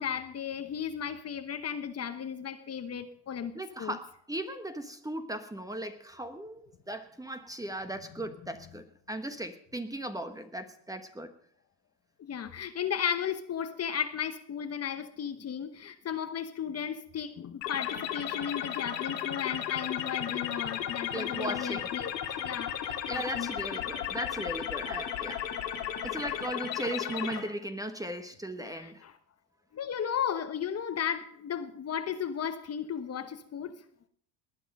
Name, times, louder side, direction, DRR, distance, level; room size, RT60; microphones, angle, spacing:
voice 1, 0.0-4.0 12.2-22.1 22.4-22.8 23.0-23.5 28.6-29.2 29.7-33.7, left 8 dB, 30° left, 9 dB, 1.2 m, -35 dB
voice 2, 3.5-11.3 18.4-18.5 21.1-21.9 22.3-22.4 22.9-25.4 26.0-29.0, right 1 dB, 5° right, 8 dB, 1.2 m, -37 dB
sound 1, 17.6-27.4, left 10 dB, 90° left, 2.9 m, -35 dB
19.5 x 10.0 x 5.4 m, 0.63 s
supercardioid pair, 105°, 49 cm